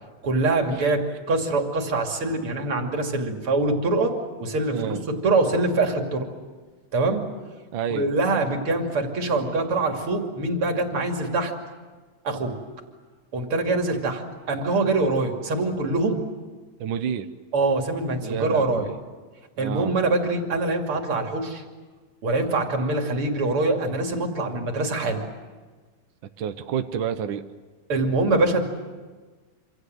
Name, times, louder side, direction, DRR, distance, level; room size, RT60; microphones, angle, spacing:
voice 1, 0.2-1.0 1.3-4.1 4.4-5.0 5.2-6.3 6.9-7.2 7.9-11.5 12.2-12.5 13.3-14.2 14.5-16.2 17.5-18.9 19.6-21.6 22.2-25.3 27.9-28.6, right 2 dB, 50° right, 3 dB, 3.4 m, -24 dB
voice 2, 4.7-5.0 7.7-8.1 16.8-17.3 18.2-19.0 19.6-20.0 26.4-27.5, right 8 dB, 70° right, 9 dB, 1.1 m, -29 dB
27.0 x 26.5 x 7.9 m, 1.4 s
omnidirectional pair, 3.4 m